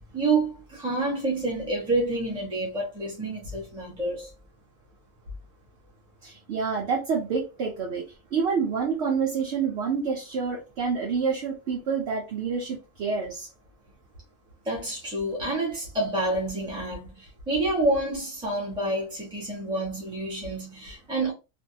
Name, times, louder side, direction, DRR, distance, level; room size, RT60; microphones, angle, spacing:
voice 1, 0.1-4.3 14.6-21.3, right 2 dB, 5° right, 0.7 m, -28 dB
voice 2, 6.2-13.5, right 5 dB, 60° right, 0.9 m, -28 dB
2.6 x 2.3 x 2.6 m
omnidirectional pair, 1.4 m